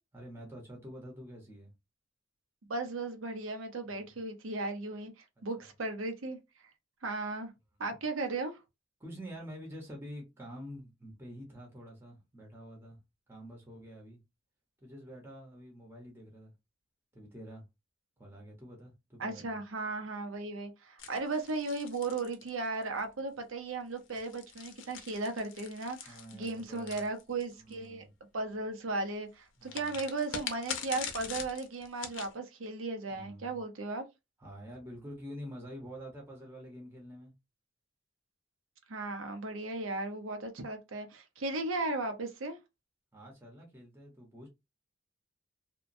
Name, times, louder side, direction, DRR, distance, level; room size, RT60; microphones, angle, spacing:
voice 1, 0.1-1.7 3.8-4.0 5.6-5.7 9.0-13.0 13.3-14.2 14.8-16.5 17.1-17.6 18.2-19.6 26.0-27.1 27.6-28.1 29.6-30.0 33.1-33.6 34.4-37.3 43.1-44.5, equal, 10° right, 0.8 m, -47 dB
voice 2, 2.7-6.4 7.0-7.5 7.8-8.6 19.2-28.1 28.3-34.0 38.9-42.6, right 3 dB, 85° right, 0.7 m, -36 dB
sound 1, 21.0-23.0 24.0-27.7 29.7-32.3, left 7 dB, 75° left, 0.6 m, -43 dB
2.9 x 2.1 x 2.6 m
head